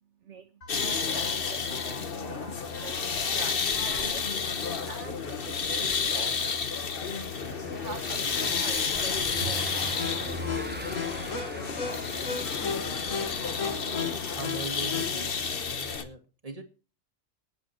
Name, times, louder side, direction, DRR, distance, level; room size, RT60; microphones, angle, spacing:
voice 1, 0.2-2.5 2.8-3.0 3.4-4.3 4.9-6.5 7.7-9.7, right 6 dB, 65° right, 8 dB, 1.3 m, -44 dB
sound 1, 0.6-16.0, left 5 dB, 90° left, 2.3 m, -39 dB
sound 2, 0.7-16.0, left 5 dB, 50° left, 1.3 m, -31 dB
Car passing by / Engine, 7.1-13.8, right 2 dB, 10° right, 0.7 m, -42 dB
voice 2, 13.9-15.4 15.7-16.6, right 3 dB, 30° right, 5 dB, 2.1 m, -41 dB
19.0 x 7.9 x 4.4 m, 0.34 s
omnidirectional pair, 1.3 m